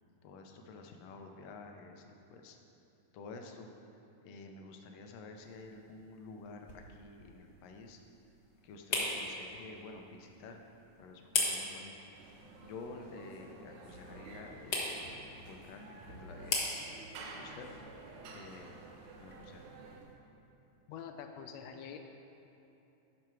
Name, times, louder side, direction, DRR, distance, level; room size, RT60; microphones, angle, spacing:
voice 1, 0.2-2.6 3.1-3.7 4.2-8.0 8.6-10.6 11.0-11.9 12.6-15.0 15.4-16.6 17.4-17.7 18.3-18.8 19.2-19.6, left 3 dB, 75° left, 3 dB, 1.6 m, -50 dB
sound 1, 5.4-20.1, left 2 dB, 50° left, 1.3 m, -42 dB
sound 2, 12.1-20.0, right 2 dB, 85° right, 2.4 m, -51 dB
voice 2, 20.9-22.0, left 7 dB, 90° left, 5 dB, 1.4 m, -45 dB
10.5 x 6.1 x 4.7 m, 3.0 s
omnidirectional pair, 3.5 m